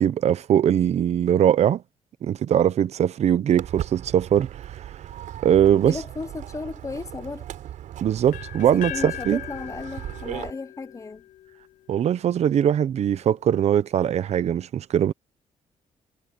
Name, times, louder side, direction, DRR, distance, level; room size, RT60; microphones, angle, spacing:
voice 1, 0.0-1.8 2.2-4.5 5.4-6.0 8.0-9.4 11.9-15.1, right 10 dB, 60° right, 0.8 m, -21 dB
Walk footsteps, 3.6-10.5, right 11 dB, 80° right, 5.1 m, -37 dB
voice 2, 5.7-7.4 8.7-11.3, left 4 dB, 25° left, 1.1 m, -35 dB
sound 1, 8.3-12.2, left 15 dB, 85° left, 0.7 m, -39 dB
cardioid pair, 115°, 13 cm